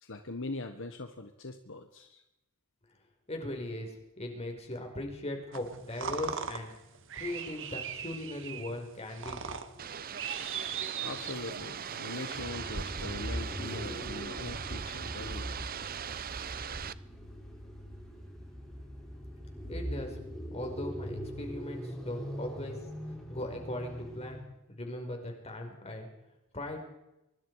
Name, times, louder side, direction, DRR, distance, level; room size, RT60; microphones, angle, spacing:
voice 1, 0.0-2.2 10.9-15.5, left 2 dB, 60° left, 6 dB, 1.5 m, -42 dB
voice 2, 3.3-6.7 7.2-9.4 9.7-9.8 19.7-20.2 20.5-22.8 23.3-26.1 26.5-26.8, left 1 dB, 30° left, 3 dB, 5.2 m, -39 dB
sound 1, 5.5-11.7, right 7 dB, 60° right, 1.9 m, -39 dB
sound 2, 9.8-16.9, right 7 dB, 40° right, 0.7 m, -39 dB
sound 3, 12.3-24.5, equal, ahead, 6.5 m, -42 dB
24.0 x 24.0 x 4.9 m, 0.91 s
head